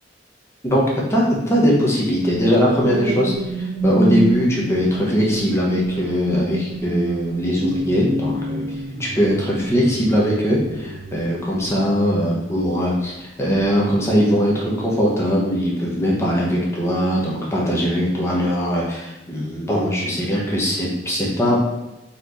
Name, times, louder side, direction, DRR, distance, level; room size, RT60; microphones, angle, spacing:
voice 1, 1.1-8.6 9.0-21.6, equal, 15° left, -4 dB, 1.1 m, -20 dB
sound 1, 2.6-12.9 13.4-13.7, right 1 dB, 40° right, 0.4 m, -28 dB
4.2 x 3.2 x 4.0 m, 0.96 s
head